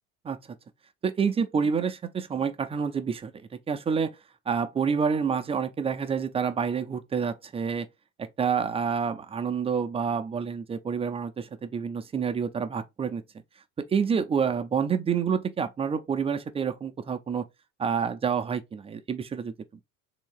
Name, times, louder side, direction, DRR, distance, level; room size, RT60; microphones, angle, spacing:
voice 1, 1.0-3.3 3.7-4.2 4.5-7.9 8.4-13.2 13.8-17.4 17.8-19.5, right 6 dB, 15° right, 0.4 m, -28 dB
3.4 x 2.8 x 3.1 m
hypercardioid pair, 80°, 42 cm